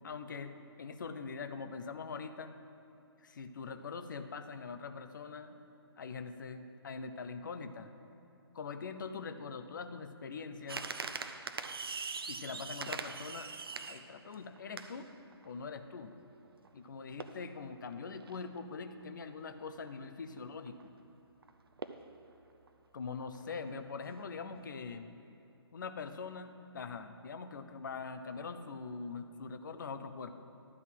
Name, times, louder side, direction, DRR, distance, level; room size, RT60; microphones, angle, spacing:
voice 1, 0.0-2.5 3.2-5.6 6.0-7.9 8.5-10.9 12.3-13.5 13.9-15.1 15.4-16.1 16.7-20.9 22.9-25.1 25.7-30.4, left 5 dB, 50° left, 9 dB, 0.6 m, -43 dB
sound 1, 10.7-15.5 16.1-16.2 16.4-16.9 17.2-18.6 19.0-19.2 19.7-19.9 20.4-20.5 20.7-20.8 21.4-21.5 21.8-22.1 22.7-22.8 23.2-23.6 24.2-24.4 24.7-24.8, right 5 dB, 60° right, 0.5 m, -42 dB
12.0 x 4.0 x 7.7 m, 3.0 s
figure-of-eight pair, 135°, 14 cm